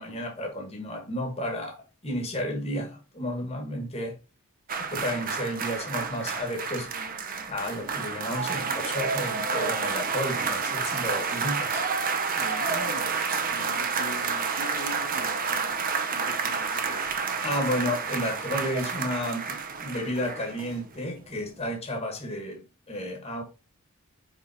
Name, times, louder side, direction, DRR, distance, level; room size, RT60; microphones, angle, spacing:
voice 1, 0.0-4.2 4.8-6.9 7.5-11.8 17.4-23.4, left 1 dB, 30° left, 1.4 m, -32 dB
sound 1, 4.7-21.0 21.3-21.4, right 5 dB, 40° right, 0.8 m, -30 dB
voice 2, 12.4-17.1, left 3 dB, 75° left, 1.7 m, -42 dB
5.4 x 4.5 x 4.1 m
head